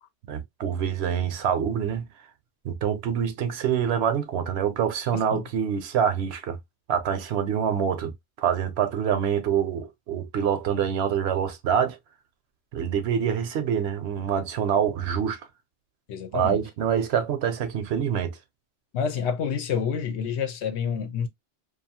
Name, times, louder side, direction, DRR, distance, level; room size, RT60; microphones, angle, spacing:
voice 1, 0.3-2.1 2.6-6.6 6.9-8.1 8.4-12.0 12.7-15.4 16.3-18.4, right 8 dB, 70° right, 0.8 m, -26 dB
voice 2, 5.1-5.4 16.1-16.6 18.9-21.3, left 7 dB, 80° left, 0.9 m, -28 dB
2.7 x 2.4 x 2.6 m
omnidirectional pair, 1.1 m